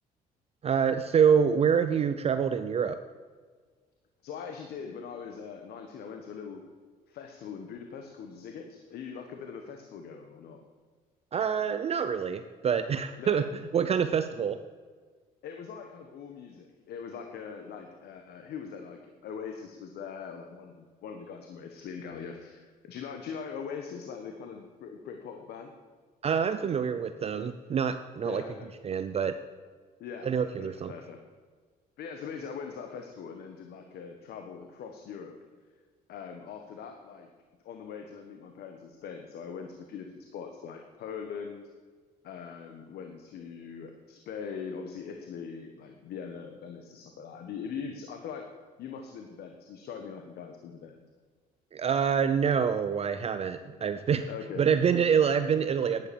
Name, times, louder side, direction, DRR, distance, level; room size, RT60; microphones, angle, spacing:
voice 1, 0.6-3.0 11.3-13.4 13.7-14.6 26.2-28.4 28.8-29.4 30.2-30.9 51.7-54.3 54.6-56.1, right 7 dB, 35° right, 10 dB, 0.6 m, -26 dB
voice 2, 4.2-6.6 7.1-10.6 13.2-13.4 15.4-25.7 28.2-28.7 30.0-31.2 32.0-35.3 36.1-37.3 37.6-41.6 42.2-48.5 48.8-51.0 53.8-53.9 54.3-54.6, left 6 dB, 70° left, 4 dB, 1.3 m, -41 dB
10.5 x 10.0 x 7.1 m, 1.5 s
cardioid pair, 110°, 17 cm